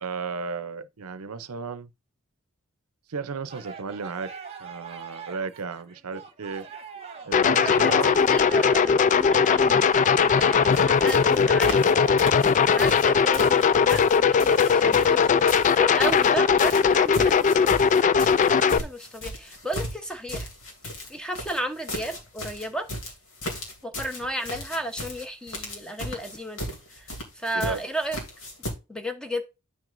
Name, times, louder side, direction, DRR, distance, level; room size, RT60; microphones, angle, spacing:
voice 1, 0.0-1.9 3.1-4.3 4.6-6.7 7.3-8.1 12.4-12.5 27.5-27.8, right 4 dB, 85° right, 0.7 m, -34 dB
sound 1, 3.5-12.2, right 6 dB, 30° right, 1.1 m, -41 dB
sound 2, 7.3-18.8, left 6 dB, 35° left, 0.3 m, -19 dB
voice 2, 7.5-9.9 10.2-11.9 12.7-18.2 18.5-20.5 21.1-22.9 23.8-28.2 28.9-29.4, equal, 5° left, 1.0 m, -33 dB
sound 3, 10.7-10.8 11.1-11.9 12.2-13.1 13.3-16.3 16.6-28.7, left 1 dB, 65° left, 2.8 m, -36 dB
9.4 x 6.1 x 2.6 m
head